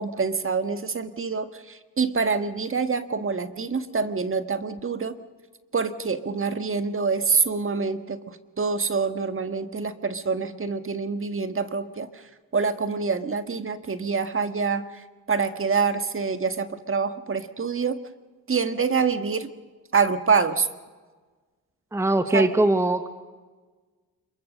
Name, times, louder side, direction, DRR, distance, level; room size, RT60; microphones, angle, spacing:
voice 1, 0.0-5.2 5.7-12.2 12.5-18.0 18.5-19.5 19.9-20.7 22.3-22.6, right 5 dB, 30° right, 9 dB, 1.7 m, -26 dB
voice 2, 21.9-23.1, right 2 dB, 5° right, 10 dB, 1.3 m, -21 dB
27.0 x 22.5 x 6.6 m, 1.4 s
supercardioid pair, 60°, 40 cm